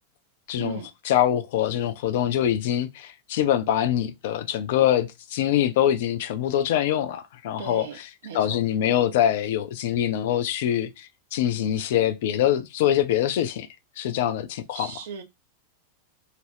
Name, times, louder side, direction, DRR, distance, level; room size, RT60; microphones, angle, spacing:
voice 1, 0.5-0.8 1.1-7.9 8.3-13.7 14.0-14.9, left 11 dB, 55° left, 0.3 m, -24 dB
voice 2, 7.6-8.6 14.7-15.2, right 7 dB, 60° right, 0.5 m, -36 dB
2.4 x 2.1 x 3.2 m
figure-of-eight pair, 90°, 0 cm